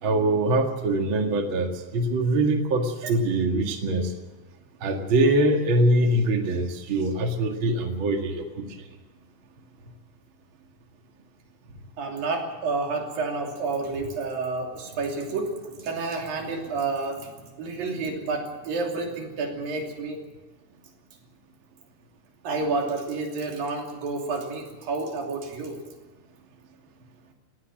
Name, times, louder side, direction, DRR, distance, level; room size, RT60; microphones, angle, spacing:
voice 1, 0.0-4.1 4.8-8.7, right 1 dB, 40° right, 3 dB, 2.4 m, -23 dB
voice 2, 12.0-20.3 22.4-25.9, right 3 dB, 85° right, 2 dB, 4.8 m, -30 dB
19.0 x 16.0 x 8.8 m, 1.2 s
omnidirectional pair, 4.0 m